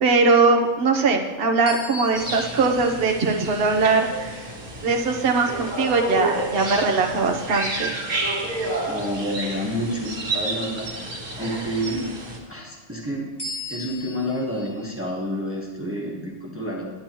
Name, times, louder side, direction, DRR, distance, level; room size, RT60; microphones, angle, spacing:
voice 1, 0.0-4.1 4.8-8.0, right 4 dB, 55° right, 3 dB, 1.0 m, -20 dB
sound 1, 1.7-6.4 7.0-7.2 13.4-15.0, left 2 dB, 35° left, 1.2 m, -40 dB
sound 2, 2.1-12.4, right 1 dB, 90° right, 1.9 m, -30 dB
voice 2, 8.9-12.0 12.5-13.3 13.7-16.8, equal, 10° right, -2 dB, 1.0 m, -29 dB
10.5 x 8.5 x 3.0 m, 1.3 s
omnidirectional pair, 1.3 m